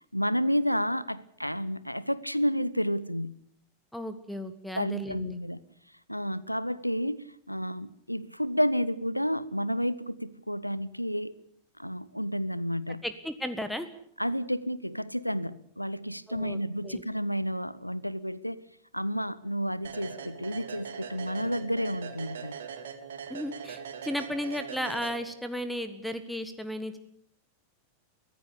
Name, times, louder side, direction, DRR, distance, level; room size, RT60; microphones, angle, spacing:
voice 1, 0.0-3.4 4.8-5.6 6.1-11.3 11.8-13.0 14.2-18.6 18.9-22.5, equal, 90° left, 0.9 m, -31 dB
voice 2, 3.9-5.4 13.0-13.9 16.3-17.0 23.3-27.0, left 1 dB, ahead, 1.6 m, -35 dB
sound 1, 19.8-25.6, right 7 dB, 65° right, 2.9 m, -41 dB
24.0 x 16.0 x 8.5 m
figure-of-eight pair, 90°, 0 cm